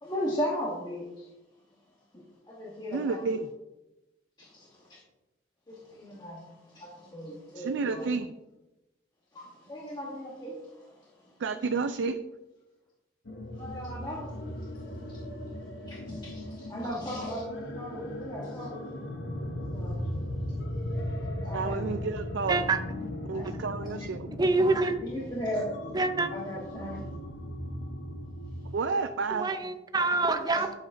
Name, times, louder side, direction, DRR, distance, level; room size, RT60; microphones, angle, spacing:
voice 1, 0.0-1.3 2.1-3.2 4.4-5.0 5.7-8.1 9.3-11.3 13.5-15.2 15.8-17.4 17.8-18.9 19.7-20.2 21.4-21.8 23.3-23.5 23.8-23.9 25.0-25.8 26.3-27.1 30.5-30.6, equal, 25° left, -4 dB, 1.1 m, -37 dB
voice 2, 2.9-3.5 7.5-8.3 11.4-12.2 16.8-17.0 21.5-22.6 23.3-24.3 28.7-29.5, right 4 dB, 75° right, 9 dB, 0.4 m, -30 dB
sound 1, 13.2-28.7, left 1 dB, 70° left, 1.0 m, -37 dB
voice 3, 22.5-22.8 24.4-25.0 25.9-26.3 29.3-30.7, right 3 dB, 20° right, 7 dB, 0.6 m, -26 dB
10.5 x 7.1 x 2.6 m, 1.0 s
head